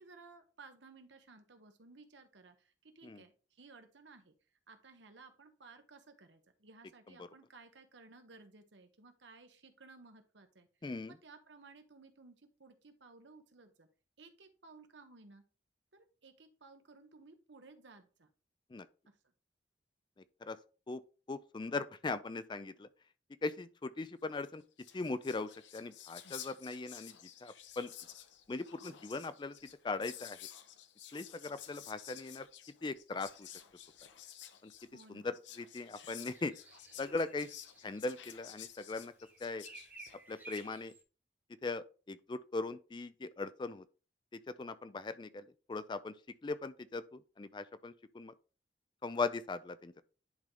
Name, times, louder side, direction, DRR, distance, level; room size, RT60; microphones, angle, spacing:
voice 1, 0.0-4.3 4.7-10.7 11.1-13.9 14.2-15.4 15.9-18.3 19.1-19.2 34.9-35.3, right 3 dB, 80° right, 1.1 m, -58 dB
voice 2, 10.8-11.1 18.7-18.9 20.4-20.6 20.9-21.0 21.3-22.9 23.4-24.6 24.9-27.9 28.5-29.5 29.8-30.4 31.1-32.5 32.8-33.5 34.6-34.7 35.1-36.5 37.0-37.5 37.8-39.1 39.4-39.7 40.3-40.9 41.6-43.8 44.3-46.1 46.4-48.3 49.0-49.9, left 3 dB, 25° left, 0.4 m, -39 dB
Whispering, 24.4-24.5 24.7-40.7, left 11 dB, 80° left, 0.7 m, -52 dB
sound 1, 36.0-38.7 39.0-41.0, right 3 dB, 10° right, 1.0 m, -55 dB
10.5 x 3.8 x 3.2 m
head